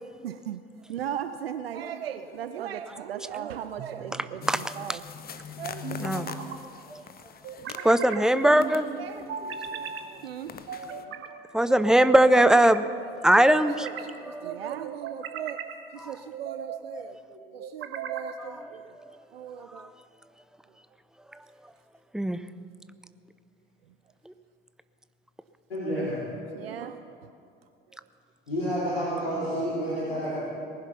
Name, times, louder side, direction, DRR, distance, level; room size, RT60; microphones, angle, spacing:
voice 1, 0.2-0.6 0.9-5.0 5.6-6.3 6.8-7.1 7.6-8.3 8.6-9.3 9.7-11.3 12.0-12.1 13.8-15.6 15.9-17.2 17.5-19.9 26.5-27.3 28.0-28.1, right 9 dB, 80° right, 0.5 m, -38 dB
sound 1, 3.8-4.4 5.8-6.6 7.4-8.2 9.3-10.1 10.7-11.3 11.9-12.8 13.4-14.1 14.8-15.8 16.3-16.8 17.6-18.4, right 7 dB, 45° right, 1.3 m, -38 dB
sound 2, 4.4-8.3 8.6-11.0, left 8 dB, 30° left, 1.0 m, -42 dB
voice 2, 4.5-5.0 6.0-6.3 6.9-7.0 7.8-8.8 11.5-12.9 13.2-13.9 14.2-14.6 16.0-16.1 18.4-18.7 19.0-19.2 19.7-19.9 22.1-22.4 24.3-24.4, right 1 dB, ahead, 0.5 m, -21 dB
voice 3, 25.7-26.2 28.5-30.4, equal, 85° left, 3.0 m, -30 dB
19.5 x 11.0 x 5.8 m
figure-of-eight pair, 60°, 29 cm